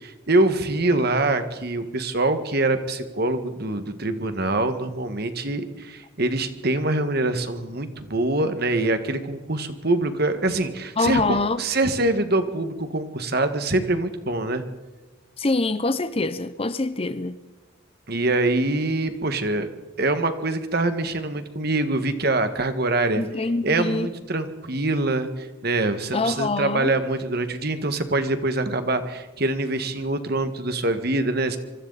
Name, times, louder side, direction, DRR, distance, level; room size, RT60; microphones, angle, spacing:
voice 1, 0.0-11.2 11.6-14.6 18.1-19.7 20.0-23.2 23.6-31.6, right 2 dB, 50° right, 1.7 m, -24 dB
voice 2, 11.0-11.6 15.4-17.4 23.2-24.1 26.1-26.9, left 2 dB, 25° left, 0.7 m, -24 dB
25.5 x 24.5 x 4.2 m
head